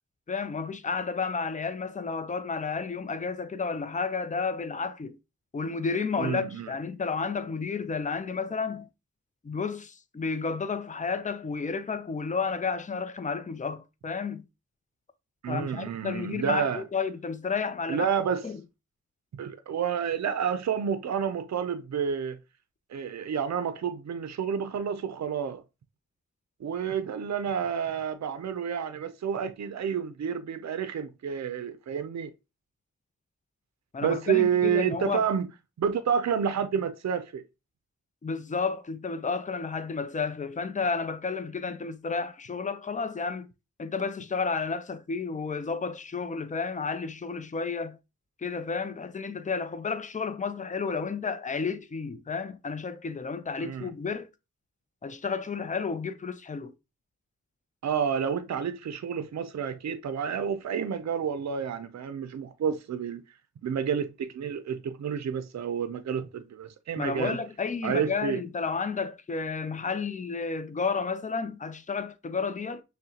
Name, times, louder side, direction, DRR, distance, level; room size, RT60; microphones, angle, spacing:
voice 1, 0.3-5.2 5.5-8.9 9.4-14.4 15.5-18.1 18.4-18.6 33.9-35.2 38.2-43.5 43.8-48.0 48.4-54.3 55.0-56.7 67.0-72.8, left 5 dB, 25° left, 0.5 m, -31 dB
voice 2, 6.2-6.7 15.4-16.8 17.9-18.4 19.3-22.4 22.9-25.6 26.6-32.3 34.0-35.5 35.8-37.4 53.6-53.9 57.8-63.2 63.6-67.4 67.8-68.4, right 7 dB, 65° right, 0.5 m, -29 dB
6.2 x 2.2 x 2.8 m
cardioid pair, 40°, 29 cm